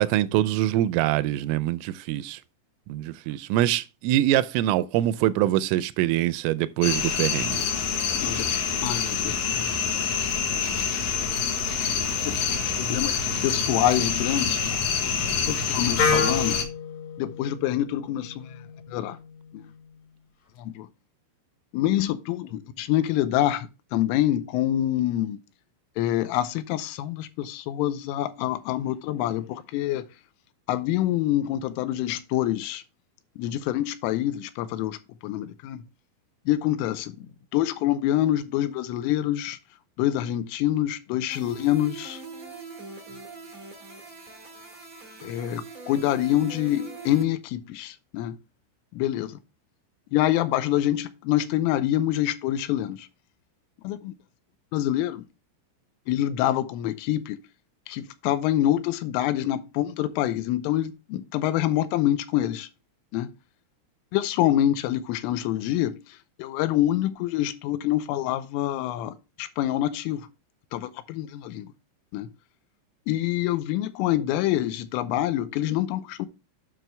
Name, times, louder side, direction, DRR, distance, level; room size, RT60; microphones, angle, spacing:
voice 1, 0.0-2.4 2.9-7.6, right 14 dB, 85° right, 3.1 m, -24 dB
sound 1, 6.8-16.6, left 6 dB, 70° left, 2.1 m, -26 dB
voice 2, 8.1-8.5 8.8-10.2 11.4-11.6 12.3-14.9 15.5-16.6 17.2-18.6 18.9-19.2 19.5-19.6 20.6-20.9 21.7-25.4 26.0-30.1 30.7-32.8 33.4-35.0 35.2-35.8 36.5-39.6 40.0-42.2 45.2-48.4 48.9-49.4 50.1-53.1 53.8-54.1 54.7-55.3 56.1-57.4 57.9-62.7 63.1-63.3 64.1-70.3 70.7-71.7 72.1-72.3 73.1-76.3, left 13 dB, 90° left, 3.4 m, -26 dB
Wind instrument woodwind instrument, 16.0-19.8, left 5 dB, 50° left, 2.2 m, -30 dB
sound 2, 41.3-47.2, right 4 dB, 45° right, 1.1 m, -42 dB
9.0 x 6.2 x 3.4 m
omnidirectional pair, 5.7 m